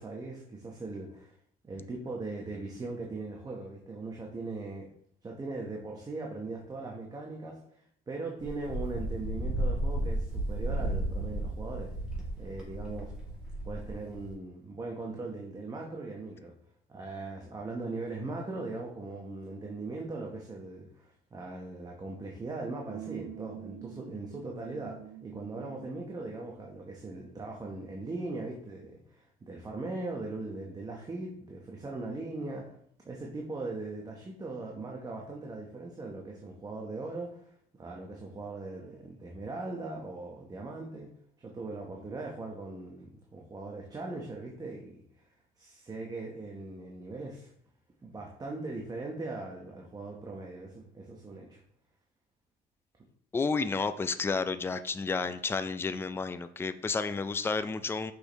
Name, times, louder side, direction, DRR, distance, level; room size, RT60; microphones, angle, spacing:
voice 1, 0.0-1.3 1.6-4.9 5.2-7.6 8.1-11.9 12.4-13.1 13.6-16.5 16.9-32.7 33.0-41.1 41.4-45.0 45.6-47.5 48.0-51.6, right 3 dB, 20° right, 0 dB, 1.0 m, -39 dB
Wind, 8.4-14.3, right 1 dB, 5° right, 2.3 m, -33 dB
sound 1, 22.9-26.0, right 12 dB, 70° right, 0.8 m, -45 dB
voice 2, 53.3-58.1, left 4 dB, 15° left, 11 dB, 0.4 m, -31 dB
6.3 x 5.1 x 3.0 m, 0.66 s
cardioid pair, 110°, 17 cm